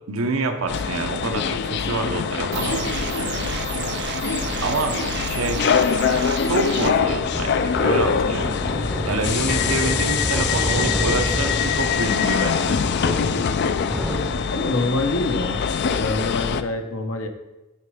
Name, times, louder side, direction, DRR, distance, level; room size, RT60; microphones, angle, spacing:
voice 1, 0.1-2.8 4.6-5.6 6.4-8.7 9.1-12.8, right 3 dB, 85° right, 6 dB, 0.9 m, -27 dB
sound 1, 0.7-16.6, left 6 dB, 55° left, 0.4 m, -24 dB
sound 2, 2.5-6.9, right 7 dB, 55° right, 0.4 m, -31 dB
sound 3, 7.0-14.7, equal, ahead, 0.6 m, -29 dB
voice 2, 14.5-17.3, left 2 dB, 75° left, 6 dB, 0.9 m, -25 dB
9.2 x 4.2 x 4.9 m, 1.0 s
head